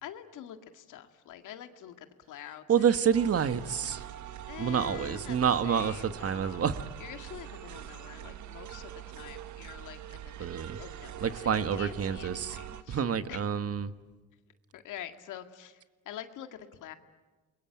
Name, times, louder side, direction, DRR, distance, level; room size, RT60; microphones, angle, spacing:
voice 1, 0.0-2.9 4.5-6.6 7.0-13.4 14.7-16.9, left 11 dB, 85° left, 8 dB, 2.1 m, -46 dB
voice 2, 2.7-4.0 4.6-6.9 10.4-10.8 11.2-12.6 12.9-13.9, right 8 dB, 50° right, 11 dB, 1.6 m, -28 dB
sound 1, 3.1-12.8, right 11 dB, 70° right, 1.5 m, -44 dB
28.5 x 22.0 x 9.0 m, 1.3 s
cardioid pair, 90°, 30 cm